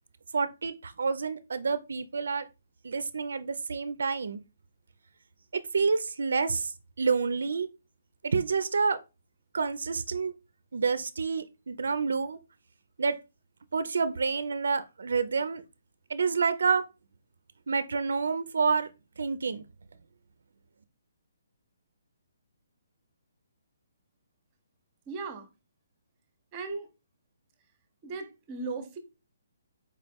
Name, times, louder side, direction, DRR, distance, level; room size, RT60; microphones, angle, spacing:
voice 1, 0.3-2.5 2.8-4.4 5.5-7.7 8.2-9.0 9.5-10.3 10.7-12.4 13.0-13.2 13.7-15.6 16.1-16.8 17.7-18.9 19.2-19.6, right 5 dB, 75° right, 0.3 m, -28 dB
voice 2, 25.1-25.5 26.5-26.9 28.0-29.0, right 4 dB, 20° right, 0.6 m, -37 dB
4.3 x 3.0 x 3.4 m
hypercardioid pair, 170°, 0 cm